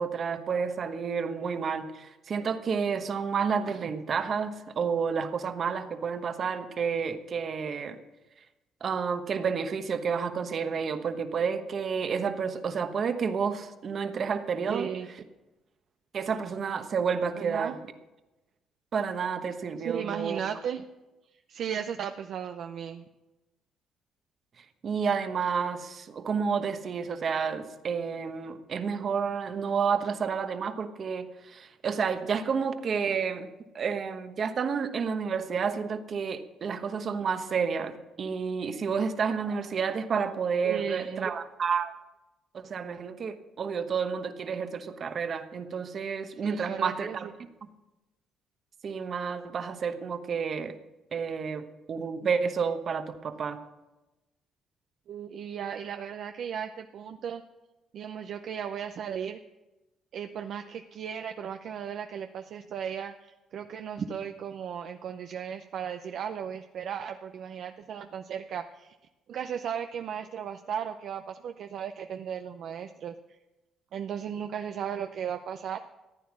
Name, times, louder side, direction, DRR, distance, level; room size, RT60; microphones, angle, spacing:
voice 1, 0.0-8.0 8.8-14.9 16.1-17.7 18.9-20.4 24.8-33.5 33.7-41.9 42.5-47.3 48.8-50.7 51.1-53.6, right 6 dB, 45° right, 8 dB, 1.2 m, -30 dB
voice 2, 14.7-15.1 17.4-17.8 19.8-20.8 21.5-23.0 40.6-41.3 46.4-47.3 55.1-57.4 57.9-59.4 60.1-68.9 69.3-73.4 73.9-75.8, right 8 dB, 65° right, 6 dB, 0.6 m, -36 dB
14.5 x 9.4 x 6.1 m, 1.0 s
cardioid pair, 100°, 0 cm